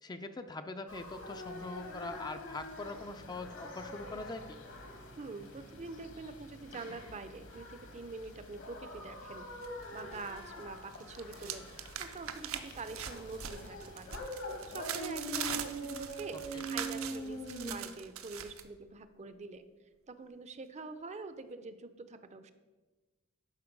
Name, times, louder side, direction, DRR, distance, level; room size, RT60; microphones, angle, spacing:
voice 1, 0.0-4.6 16.5-16.6, left 2 dB, 20° left, 8 dB, 0.4 m, -42 dB
sound 1, 0.9-17.8, equal, 65° left, 1.5 m, -44 dB
voice 2, 5.2-9.5 9.9-11.7 12.0-14.2 14.7-19.6 20.1-22.5, right 3 dB, 35° right, 11 dB, 0.5 m, -45 dB
sound 2, 9.6-10.5 10.8-18.6, right 9 dB, 75° right, 0.7 m, -42 dB
11.5 x 4.5 x 5.2 m, 1.2 s
head